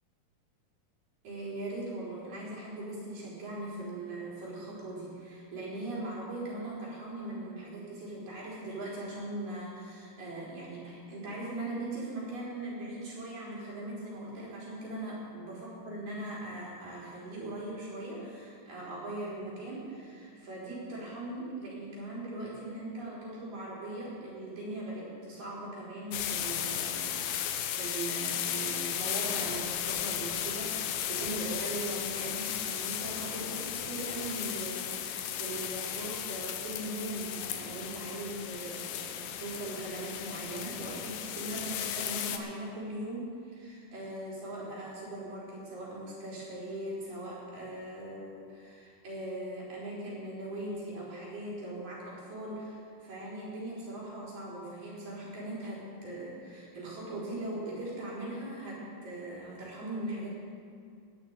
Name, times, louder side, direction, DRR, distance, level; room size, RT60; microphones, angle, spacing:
voice 1, 1.2-60.3, right 1 dB, 65° right, -6 dB, 5.6 m, -40 dB
sound 1, 26.1-42.4, left 10 dB, 80° left, 2.6 m, -35 dB
18.0 x 6.1 x 9.5 m, 2.3 s
omnidirectional pair, 4.1 m